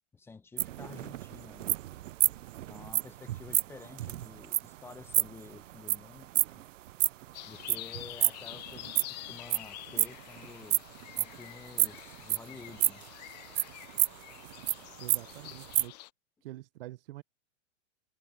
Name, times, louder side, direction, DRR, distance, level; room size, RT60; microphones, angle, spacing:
voice 1, 0.1-1.7 2.7-6.6 7.5-10.8 11.1-13.0, left 4 dB, 5° left, 0.9 m, -50 dB
sound 1, 0.6-7.3 7.6-9.6 9.9-11.4 11.8-13.1 13.6-14.7 15.1-15.2 15.5-15.8, right 14 dB, 90° right, 0.6 m, -29 dB
sound 2, 7.3-16.1, left 18 dB, 35° left, 0.5 m, -47 dB
voice 2, 15.0-16.0 16.4-17.2, right 16 dB, 50° right, 0.7 m, -45 dB
supercardioid pair, 155°, 37 cm